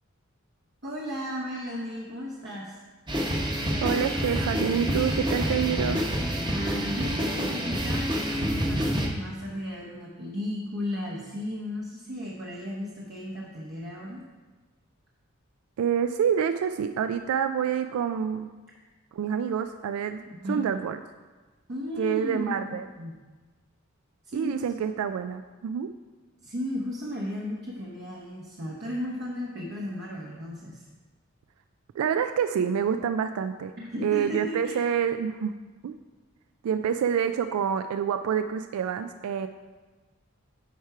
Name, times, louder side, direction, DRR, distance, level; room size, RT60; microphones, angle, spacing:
voice 1, 0.8-2.8 6.5-14.3 20.3-20.7 21.7-23.2 24.2-24.7 26.4-30.8 33.8-34.9, left 1 dB, 50° right, -3 dB, 0.8 m, -35 dB
sound 1, 3.1-9.1, equal, 20° right, 0.9 m, -27 dB
voice 2, 3.8-6.0 15.8-18.5 19.1-20.2 20.5-21.0 22.0-22.9 24.3-25.9 32.0-33.7 34.0-35.5 35.8-36.0 36.6-39.5, right 8 dB, 90° right, 9 dB, 0.3 m, -27 dB
9.3 x 4.4 x 4.7 m, 1.3 s
head